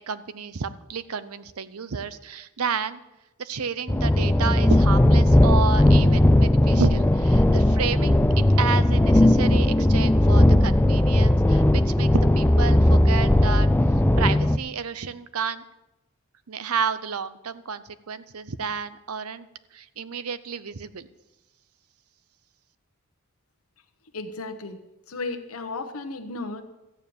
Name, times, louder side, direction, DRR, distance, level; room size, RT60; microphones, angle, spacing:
voice 1, 0.1-3.0 3.4-8.2 8.6-12.1 12.3-13.7 14.2-15.6 16.5-19.5 19.7-21.1, right 6 dB, 90° right, 14 dB, 0.7 m, -31 dB
sound 1, 3.9-14.6, left 1 dB, 10° left, 0.4 m, -18 dB
voice 2, 24.1-24.8 25.1-26.6, left 3 dB, 85° left, 6 dB, 1.0 m, -34 dB
13.5 x 9.3 x 7.0 m, 0.97 s
head